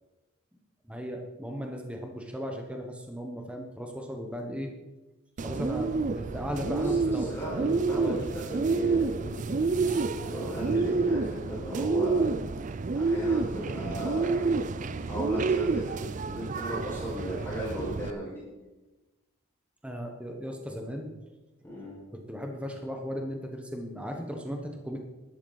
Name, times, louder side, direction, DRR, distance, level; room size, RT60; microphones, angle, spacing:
voice 1, 0.8-4.7 5.4-8.2 19.8-21.1 22.1-25.0, equal, 5° right, 3 dB, 1.0 m, -36 dB
Bird, 5.4-18.1, right 4 dB, 35° right, 0.4 m, -29 dB
voice 2, 6.6-9.5 9.9-12.3 12.9-14.5 14.8-16.0 16.3-18.4 21.6-22.0, right 1 dB, 10° left, -8 dB, 5.1 m, -36 dB
12.5 x 11.5 x 4.0 m, 1.1 s
head